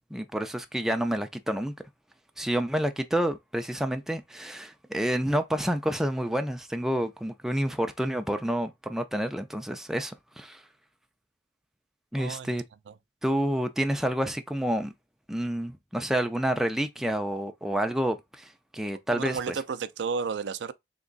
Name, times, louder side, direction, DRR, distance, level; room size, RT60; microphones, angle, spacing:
voice 1, 0.1-1.7 2.4-10.6 12.1-12.6 13.2-14.9 15.3-19.6, equal, 5° right, 0.4 m, -29 dB
voice 2, 12.2-12.5 12.9-13.0 19.1-20.7, right 5 dB, 80° right, 0.4 m, -32 dB
3.5 x 2.9 x 3.9 m
head